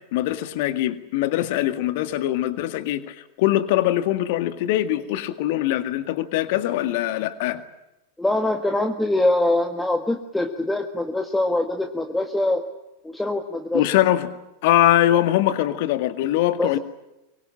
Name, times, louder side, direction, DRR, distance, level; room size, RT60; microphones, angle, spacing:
voice 1, 0.0-7.6 13.7-14.3 14.6-16.8, left 13 dB, 50° left, 11 dB, 1.9 m, -22 dB
voice 2, 8.2-12.7 13.0-13.8 16.6-16.8, left 2 dB, 5° left, 6 dB, 1.7 m, -23 dB
24.5 x 23.5 x 8.7 m, 0.95 s
figure-of-eight pair, 90°, 0 cm